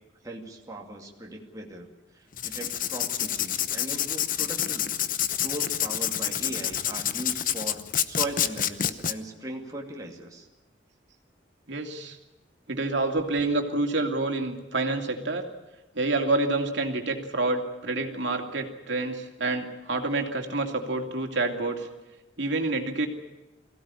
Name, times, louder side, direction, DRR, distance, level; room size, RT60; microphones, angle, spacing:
voice 1, 0.2-1.9 2.1-5.0 5.4-10.5, right 1 dB, 20° right, 0 dB, 2.4 m, -38 dB
Writing, 2.3-9.1, left 10 dB, 45° left, 0.8 m, -28 dB
voice 2, 11.7-12.2 12.7-15.5 15.9-21.9 22.4-23.1, right 2 dB, 70° right, 4 dB, 2.8 m, -28 dB
22.5 x 16.0 x 9.8 m, 1.0 s
head